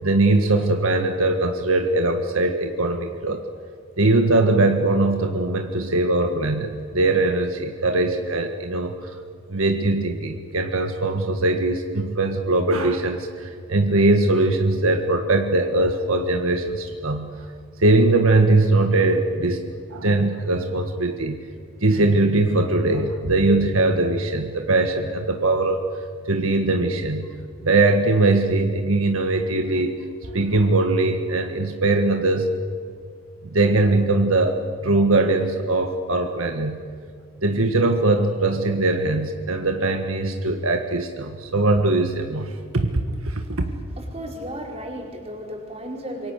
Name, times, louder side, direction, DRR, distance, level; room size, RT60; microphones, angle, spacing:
voice 1, 0.0-3.4 4.0-9.1 9.5-17.3 17.8-21.4 21.8-25.8 26.3-27.3 27.6-30.0 30.3-32.5 33.4-34.6 34.8-36.8 37.4-42.9 43.3-43.4, right 2 dB, 75° right, 5 dB, 1.8 m, -21 dB
voice 2, 43.9-46.3, equal, 30° right, 0 dB, 4.7 m, -34 dB
27.5 x 24.5 x 6.7 m, 2.2 s
head